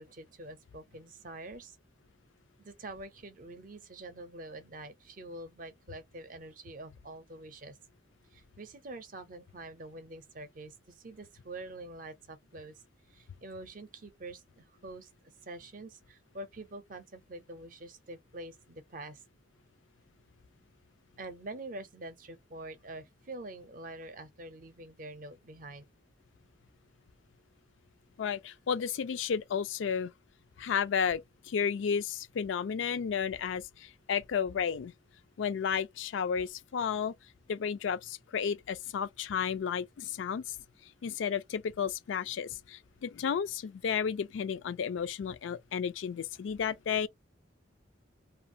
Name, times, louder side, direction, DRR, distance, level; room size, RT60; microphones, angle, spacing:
voice 1, 0.0-1.8 2.6-7.8 8.3-19.2 21.2-25.9, right 2 dB, 45° right, 0.5 m, -46 dB
voice 2, 28.2-30.1 30.6-34.9 35.4-37.1 37.5-40.6 41.0-47.1, left 7 dB, 85° left, 0.4 m, -32 dB
2.4 x 2.3 x 2.7 m
head